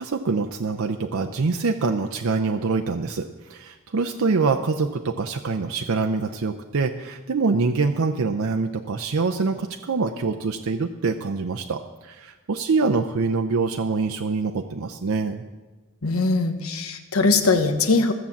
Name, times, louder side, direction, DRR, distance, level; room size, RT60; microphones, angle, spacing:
voice 1, 0.0-15.4, right 4 dB, 85° right, 5 dB, 0.6 m, -25 dB
voice 2, 16.0-18.1, left 3 dB, 90° left, 7 dB, 1.1 m, -21 dB
15.0 x 7.1 x 7.2 m, 1.2 s
head